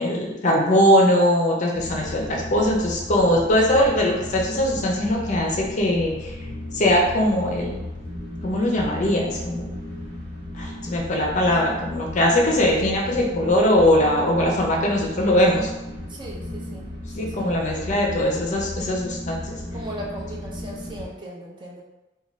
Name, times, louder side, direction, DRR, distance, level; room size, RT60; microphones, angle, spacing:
voice 1, 0.0-6.3 6.7-7.8 8.4-9.7 10.5-15.7 17.2-19.6, left 1 dB, 40° left, -1 dB, 0.5 m, -21 dB
sound 1, 1.7-21.1, left 1 dB, 55° right, 1.1 m, -35 dB
voice 2, 16.1-16.9 17.2-17.9 19.7-21.8, right 1 dB, 25° right, -3 dB, 0.4 m, -38 dB
2.5 x 2.2 x 3.1 m, 1.0 s
head